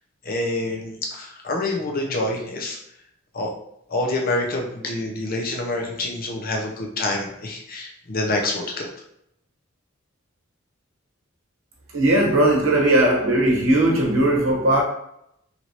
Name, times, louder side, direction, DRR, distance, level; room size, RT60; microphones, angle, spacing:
voice 1, 0.2-2.8 3.3-3.5 3.9-8.9, left 2 dB, 45° left, 0.7 m, -27 dB
voice 2, 11.9-14.8, right 1 dB, 85° right, 0.8 m, -18 dB
2.9 x 2.6 x 3.0 m
head